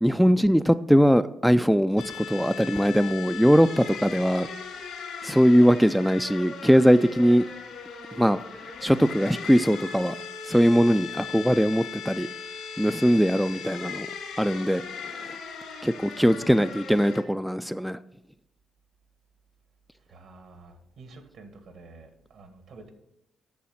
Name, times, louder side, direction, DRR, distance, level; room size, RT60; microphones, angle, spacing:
voice 1, 0.0-4.5 5.2-7.4 8.2-8.4 8.8-10.2 10.4-12.3 12.8-14.1 14.4-15.4 15.8-18.0, equal, ahead, 11 dB, 0.3 m, -21 dB
sound 1, 2.0-17.2, left 5 dB, 85° left, 2.4 m, -38 dB
voice 2, 20.0-22.9, right 3 dB, 70° right, 7 dB, 1.7 m, -49 dB
8.5 x 6.9 x 5.7 m, 0.84 s
cardioid pair, 90°, 0 cm